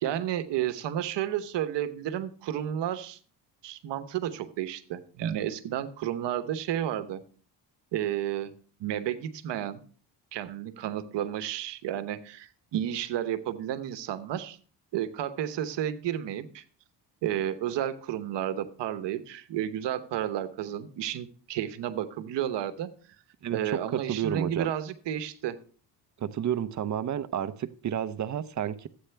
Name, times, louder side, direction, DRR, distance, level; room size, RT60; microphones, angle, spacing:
voice 1, 0.0-3.2 3.6-7.2 7.9-8.5 8.8-9.8 10.3-14.6 14.9-16.6 17.2-22.9 23.5-25.6, right 11 dB, 70° right, 1.0 m, -32 dB
voice 2, 23.4-23.8 24.1-24.7 26.2-28.9, right 9 dB, 40° right, 0.7 m, -31 dB
13.0 x 8.7 x 3.4 m
cardioid pair, 105°, 43 cm